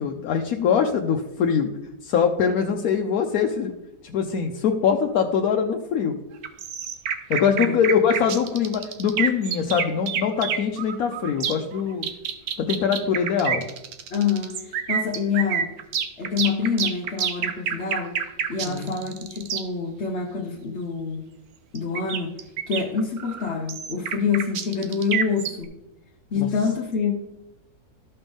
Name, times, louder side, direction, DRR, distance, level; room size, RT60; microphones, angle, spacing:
voice 1, 0.0-1.7 2.0-3.7 4.0-6.2 7.3-12.1 12.6-13.6 18.6-18.9 26.3-26.5, left 7 dB, 75° left, 2 dB, 1.1 m, -23 dB
sound 1, 6.4-19.6 21.8-25.6, right 8 dB, 75° right, 1.2 m, -28 dB
voice 2, 14.1-15.7 16.2-18.2 18.5-21.3 21.7-25.7 26.3-27.1, left 6 dB, 50° left, 0 dB, 1.0 m, -26 dB
14.0 x 5.6 x 3.5 m, 0.93 s
omnidirectional pair, 1.6 m